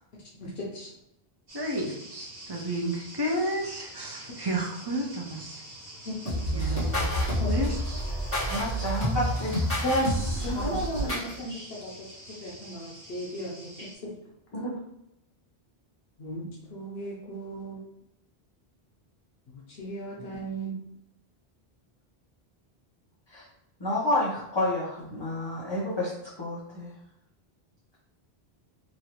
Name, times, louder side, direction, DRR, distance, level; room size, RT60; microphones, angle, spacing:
voice 1, 0.4-0.9 6.1-6.8 7.4-7.5 9.8-11.9 12.3-13.7 14.0-14.1 14.5-14.6 16.2-17.8 19.5-20.7, equal, 75° left, -4 dB, 1.0 m, -34 dB
voice 2, 1.5-5.6 6.5-8.0, right 1 dB, 35° right, -1 dB, 0.4 m, -32 dB
sound 1, 1.5-14.0, equal, 65° right, 1.3 m, -46 dB
sound 2, 6.3-11.3, equal, 15° left, 1.3 m, -28 dB
voice 3, 8.5-9.6 10.5-11.2 11.5-11.7 14.5-14.7 20.2-20.3 23.3-23.4 23.8-26.1 26.4-26.9, left 1 dB, 30° left, -8 dB, 0.7 m, -30 dB
3.1 x 2.5 x 2.8 m, 0.81 s
omnidirectional pair, 1.1 m